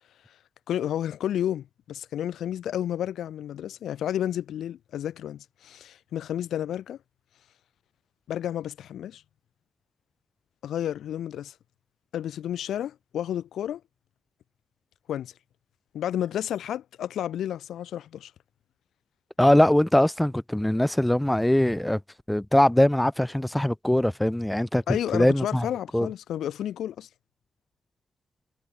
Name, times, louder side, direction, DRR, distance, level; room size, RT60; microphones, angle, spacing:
voice 1, 0.7-7.0 8.3-9.2 10.6-11.5 12.1-13.8 15.1-15.3 15.9-18.3 24.9-27.1, left 10 dB, 85° left, 4.9 m, -31 dB
voice 2, 19.4-22.0 22.3-25.7 25.9-26.1, left 1 dB, 5° left, 6.1 m, -22 dB
cardioid pair, 85°, 0 cm